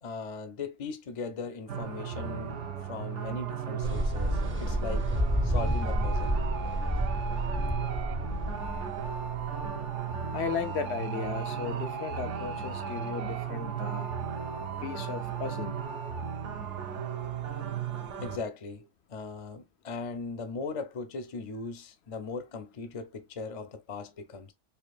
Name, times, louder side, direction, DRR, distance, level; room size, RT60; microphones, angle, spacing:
voice 1, 0.0-2.6 2.9-5.1 5.4-6.4 18.2-24.5, left 4 dB, 40° left, 0.6 m, -38 dB
sound 1, 1.7-18.4, right 7 dB, 85° right, 1.1 m, -35 dB
sound 2, 3.8-10.4, equal, 15° right, 0.5 m, -30 dB
voice 2, 10.3-14.1 14.8-15.9, left 6 dB, 70° left, 0.8 m, -35 dB
4.4 x 2.8 x 2.3 m
omnidirectional pair, 1.2 m